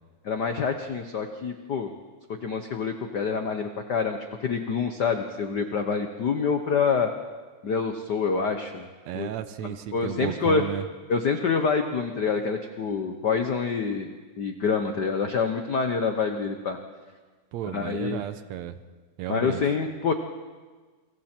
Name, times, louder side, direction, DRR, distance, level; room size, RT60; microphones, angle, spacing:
voice 1, 0.2-1.9 2.4-7.1 7.6-8.9 9.1-9.3 9.9-10.6 11.1-14.1 14.4-16.8 17.7-18.2 19.3-20.1, left 5 dB, 85° left, 6 dB, 0.9 m, -26 dB
voice 2, 9.1-10.9 17.5-18.8 19.2-19.6, right 11 dB, 75° right, 11 dB, 1.9 m, -33 dB
29.0 x 24.0 x 4.5 m, 1.4 s
omnidirectional pair, 3.4 m